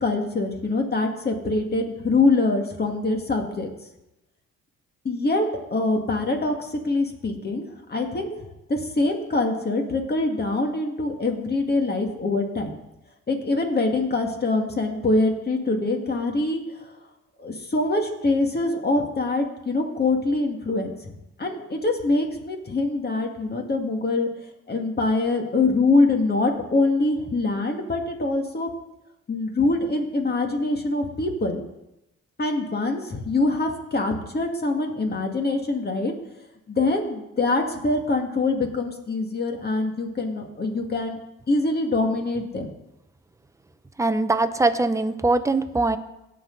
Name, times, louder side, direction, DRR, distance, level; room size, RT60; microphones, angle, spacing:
voice 1, 0.0-3.7 5.0-8.4 8.7-12.7 13.3-16.9 17.4-24.3 24.7-28.7 29.3-31.6 32.4-36.1 36.7-41.2 41.5-42.7, left 2 dB, 35° left, 3 dB, 2.0 m, -24 dB
voice 2, 44.0-46.0, right 2 dB, 10° right, 10 dB, 0.7 m, -22 dB
18.0 x 6.1 x 3.9 m, 0.91 s
cardioid pair, 90°, 30 cm